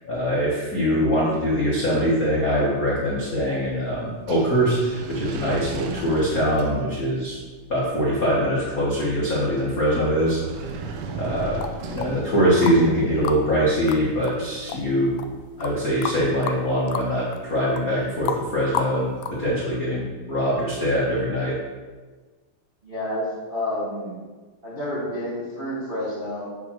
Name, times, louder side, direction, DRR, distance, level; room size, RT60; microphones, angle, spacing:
voice 1, 0.0-7.4 7.7-10.4 10.7-10.8 11.1-15.1 15.6-19.1 19.4-21.5, equal, 55° left, -7 dB, 0.9 m, -23 dB
sound 1, 3.1-16.2, right 3 dB, 85° right, 1.4 m, -39 dB
sound 2, 11.6-12.9 13.2-19.5, left 7 dB, 90° left, 1.6 m, -32 dB
voice 2, 22.8-24.2 24.6-26.5, left 1 dB, 35° right, -8 dB, 0.8 m, -29 dB
8.2 x 3.7 x 6.1 m, 1.4 s
omnidirectional pair, 3.8 m